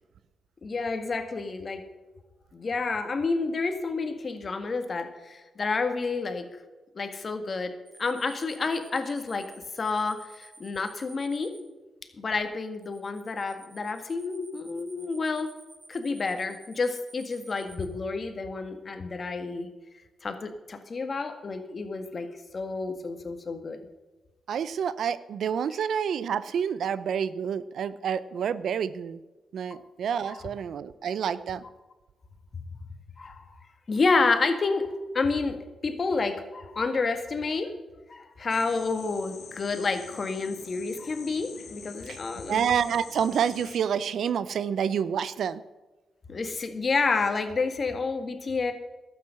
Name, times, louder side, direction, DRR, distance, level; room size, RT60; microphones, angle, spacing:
voice 1, 0.6-1.8 2.5-6.5 7.0-9.5 9.7-11.5 12.2-15.5 15.9-19.7 20.2-22.3 22.5-23.8 25.7-25.8 29.7-29.8 30.3-30.4 33.2-33.6 33.9-34.9 35.1-37.7 38.1-42.7 46.3-48.7, left 4 dB, 45° left, 7 dB, 1.7 m, -29 dB
sound 1, 7.9-11.6 12.8-17.9, right 2 dB, 30° right, 4.0 m, -52 dB
voice 2, 24.5-29.2 29.5-31.6 42.1-42.2 42.5-45.6, right 8 dB, 75° right, 16 dB, 0.6 m, -28 dB
sound 2, 38.5-43.8, left 7 dB, 75° left, 1.4 m, -46 dB
12.0 x 8.8 x 6.5 m, 1.2 s
cardioid pair, 70°, 0 cm